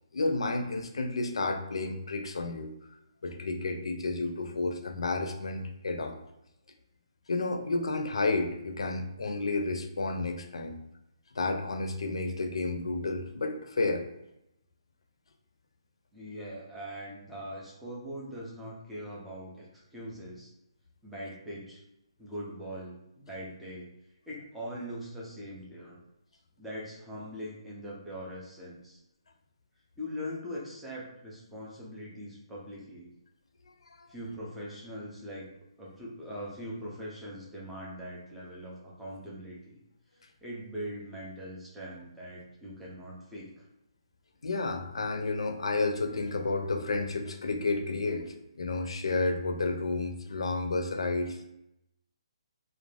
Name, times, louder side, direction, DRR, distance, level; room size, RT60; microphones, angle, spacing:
voice 1, 0.1-2.7 3.2-6.2 7.3-10.8 11.3-14.1 33.9-34.1 44.4-51.5, left 3 dB, 75° left, 5 dB, 0.4 m, -31 dB
voice 2, 16.1-19.7 19.9-20.5 21.0-21.8 22.2-23.9 24.3-26.0 26.6-29.0 30.0-33.1 34.1-35.5 35.8-39.8 40.4-43.6, equal, ahead, -7 dB, 0.3 m, -41 dB
2.4 x 2.1 x 3.2 m, 0.84 s
hypercardioid pair, 180°, 3 cm